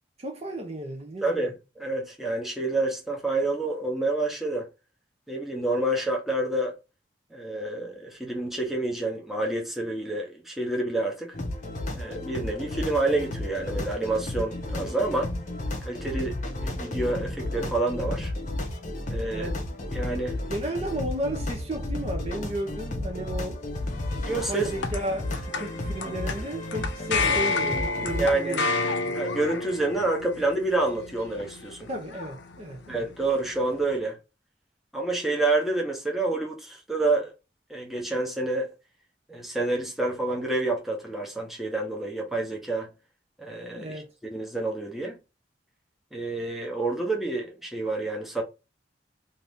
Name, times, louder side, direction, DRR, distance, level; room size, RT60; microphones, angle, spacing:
voice 1, 0.2-1.5 19.3-19.6 20.5-23.6 24.3-28.7 29.0-29.2 31.9-33.0 43.8-44.1, right 1 dB, 35° right, 0.7 m, -34 dB
voice 2, 1.2-4.7 5.3-6.7 7.3-11.4 11.9-15.3 15.8-16.3 16.6-18.3 19.1-19.5 19.9-20.4 24.2-24.7 28.2-28.6 29.1-31.9 32.9-34.2 34.9-37.3 37.7-38.7 39.3-42.9 43.4-43.9 44.2-45.2 46.1-48.4, right 2 dB, ahead, 0.9 m, -28 dB
sound 1, 11.3-28.3, left 1 dB, 45° left, 0.8 m, -33 dB
sound 2, 23.9-34.0, left 3 dB, 85° left, 0.6 m, -31 dB
2.8 x 2.6 x 3.4 m
head